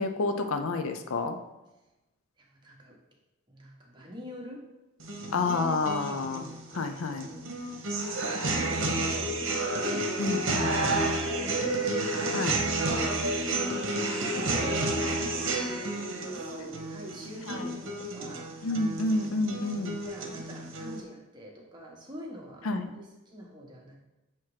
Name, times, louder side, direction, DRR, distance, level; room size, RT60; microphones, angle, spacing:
voice 1, 0.0-1.4 5.3-6.5 6.7-7.3 10.2-10.8 12.3-12.6 17.5-17.7 18.6-20.0 22.6-22.9, left 3 dB, 75° left, 7 dB, 0.5 m, -29 dB
voice 2, 2.4-3.0 3.5-4.6 6.3-6.5 7.1-10.1 10.4-11.8 13.6-18.5 20.1-23.9, equal, 20° right, -2 dB, 1.1 m, -44 dB
sound 1, 5.0-21.0, right 2 dB, 60° right, 1.0 m, -31 dB
7.4 x 3.0 x 4.7 m, 1.0 s
head